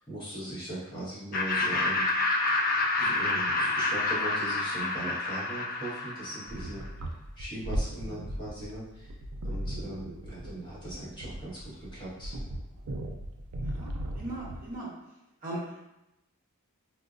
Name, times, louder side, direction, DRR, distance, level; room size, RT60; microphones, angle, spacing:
voice 1, 0.0-2.1 3.0-6.8 7.4-9.1 9.4-12.3, right 1 dB, 20° left, -9 dB, 1.1 m, -39 dB
Laughter, 1.3-6.6, left 2 dB, 40° left, 0.3 m, -28 dB
sound 1, 6.5-14.7, right 1 dB, 75° right, 0.4 m, -37 dB
voice 2, 13.6-14.9 15.4-15.6, right 1 dB, 40° right, -5 dB, 0.6 m, -39 dB
4.2 x 2.0 x 2.4 m, 0.91 s
head